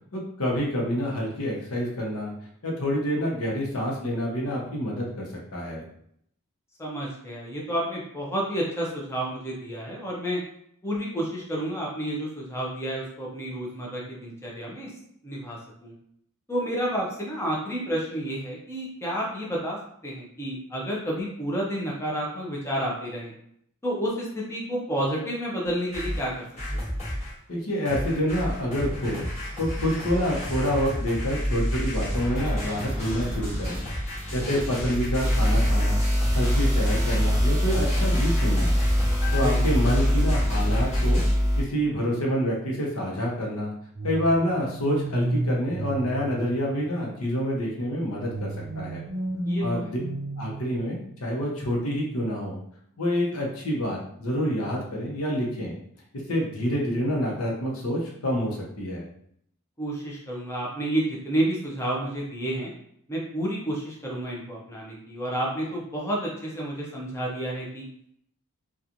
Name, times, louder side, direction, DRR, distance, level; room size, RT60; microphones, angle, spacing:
voice 1, 0.1-2.3 2.6-5.8 27.5-29.3 29.6-33.8 34.3-36.0 36.3-38.7 39.3-41.2 41.6-43.7 44.0-49.0 49.6-50.0 50.4-52.6 53.0-55.7 56.1-59.0, equal, 70° left, -2 dB, 0.8 m, -27 dB
voice 2, 6.8-10.4 10.8-14.9 15.2-15.9 16.5-19.8 20.0-23.3 23.8-26.4 26.7-26.9 34.5-34.6 39.4-39.8 49.4-49.9 59.8-62.7 63.1-67.8, right 1 dB, 10° left, -4 dB, 0.5 m, -30 dB
sound 1, 25.7-27.3 27.9-41.3, equal, 30° left, 1.1 m, -31 dB
sound 2, 35.2-41.6, equal, 15° right, 0.9 m, -23 dB
sound 3, 44.0-47.1 48.2-51.2, right 2 dB, 40° right, 0.4 m, -32 dB
2.9 x 2.3 x 2.5 m, 0.69 s
head